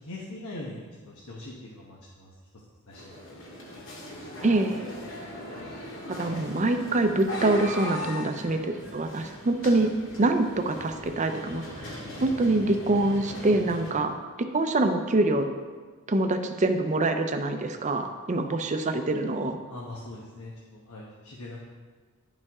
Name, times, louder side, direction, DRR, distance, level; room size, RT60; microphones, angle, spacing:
voice 1, 0.0-2.3 2.9-3.1 19.7-21.6, left 2 dB, 90° left, -4 dB, 1.1 m, -41 dB
sound 1, 2.9-13.9, left 1 dB, 65° left, 2.1 m, -39 dB
voice 2, 4.4-4.8 6.1-9.9 10.2-11.9 12.2-15.5 16.1-19.6, right 2 dB, 35° right, 7 dB, 0.6 m, -25 dB
11.0 x 5.4 x 3.6 m, 1.5 s
head